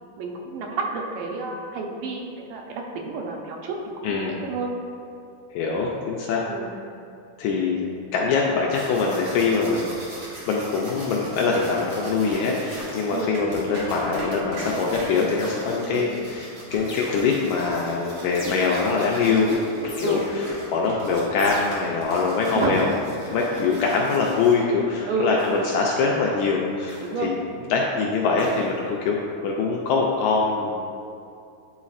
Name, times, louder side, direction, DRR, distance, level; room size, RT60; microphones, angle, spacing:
voice 1, 0.2-3.8 4.1-4.7 6.5-6.7 13.1-13.3 15.9-16.1 20.0-20.3 22.6-22.8 23.3-23.5 25.1-25.4 27.0-27.3, right 4 dB, 90° right, 0 dB, 2.3 m, -30 dB
voice 2, 4.0-4.4 5.5-6.5 7.4-9.9 10.5-19.5 20.0-22.9 23.3-27.4 27.7-29.2 29.4-30.8, left 4 dB, 80° left, -2 dB, 1.7 m, -23 dB
sound 1, 8.7-24.9, right 1 dB, 55° right, 1.5 m, -37 dB
sound 2, 13.9-14.5 15.4-16.0 16.9-17.6 18.4-19.1 19.9-20.6 21.4-22.1 23.9-24.3 25.4-25.8 26.9-27.3 28.4-28.9, left 1 dB, 60° left, 1.5 m, -41 dB
9.6 x 4.1 x 2.4 m, 2.6 s
omnidirectional pair, 3.8 m